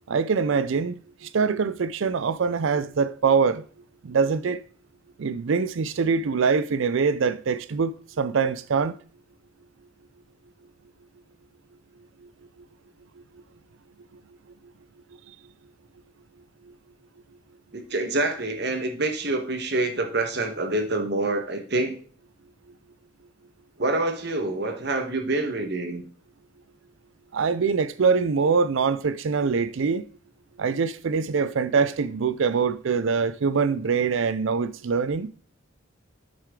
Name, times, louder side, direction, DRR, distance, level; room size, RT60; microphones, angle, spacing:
voice 1, 0.1-1.0 1.2-3.6 4.0-4.6 5.2-8.9 27.3-30.0 30.6-35.3, right 5 dB, 70° right, 0.4 m, -24 dB
voice 2, 17.7-21.9 23.8-26.0, right 2 dB, 50° right, 1.3 m, -26 dB
8.9 x 6.6 x 3.7 m
head